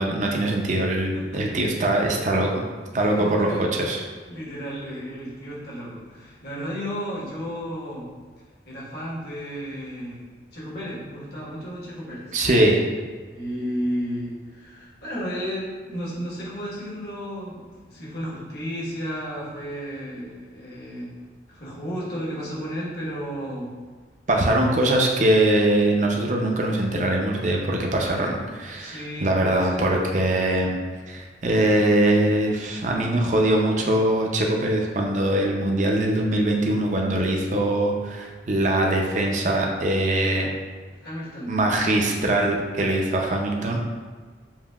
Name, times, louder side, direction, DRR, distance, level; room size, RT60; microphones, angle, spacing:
voice 1, 0.0-2.6 2.9-4.0 12.3-12.8 24.3-30.8 31.1-40.5 41.5-43.8, right 1 dB, 40° right, 1 dB, 0.5 m, -22 dB
voice 2, 1.1-1.6 3.0-3.7 4.3-8.1 8.6-10.2 10.5-12.4 13.3-21.1 21.5-23.7 28.8-29.9 41.0-41.5, equal, 60° left, -6 dB, 1.3 m, -33 dB
7.1 x 2.7 x 2.3 m, 1.5 s
head